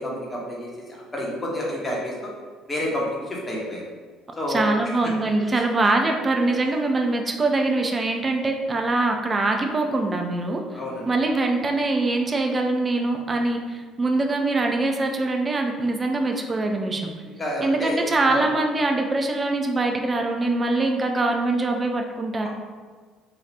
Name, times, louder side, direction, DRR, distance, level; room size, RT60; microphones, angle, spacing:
voice 1, 0.0-2.1 2.7-3.9 4.4-4.7 5.0-5.1 10.7-11.1 17.4-18.4, left 1 dB, 25° left, -3 dB, 0.9 m, -29 dB
voice 2, 4.5-10.6 11.1-17.1 17.6-22.5, right 2 dB, 25° right, 3 dB, 0.4 m, -23 dB
2.8 x 2.3 x 3.3 m, 1.5 s
figure-of-eight pair, 55°, 0 cm